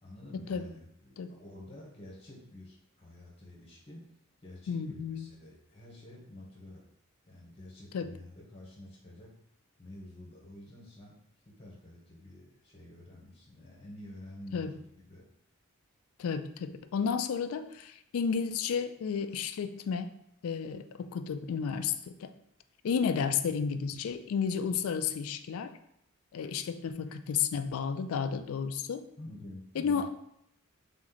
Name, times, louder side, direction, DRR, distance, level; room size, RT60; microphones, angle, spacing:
voice 1, 0.0-4.1 4.4-6.8 7.3-9.3 9.8-11.2 11.4-15.2 29.2-30.1, left 1 dB, 25° left, -3 dB, 1.0 m, -49 dB
voice 2, 4.7-5.3 7.9-8.1 14.5-14.7 16.2-20.1 20.4-22.3 22.8-25.7 26.3-29.1 29.8-30.1, left 6 dB, 75° left, 10 dB, 0.3 m, -32 dB
3.6 x 3.0 x 3.9 m, 0.76 s
head